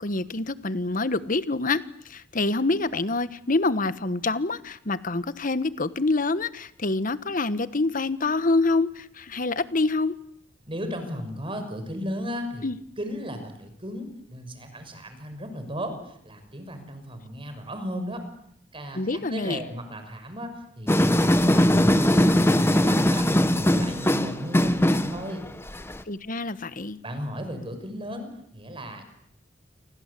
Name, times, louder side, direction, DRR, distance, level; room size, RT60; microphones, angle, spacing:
voice 1, 0.0-10.1 12.6-12.8 18.9-19.6 26.1-27.0, left 3 dB, 45° left, 14 dB, 1.3 m, -26 dB
voice 2, 10.7-12.7 13.0-18.2 18.7-25.4 27.0-29.0, equal, 30° right, 8 dB, 5.9 m, -36 dB
sound 1, 20.9-26.0, left 1 dB, 15° left, 1.2 m, -20 dB
29.0 x 24.0 x 8.4 m, 0.71 s
head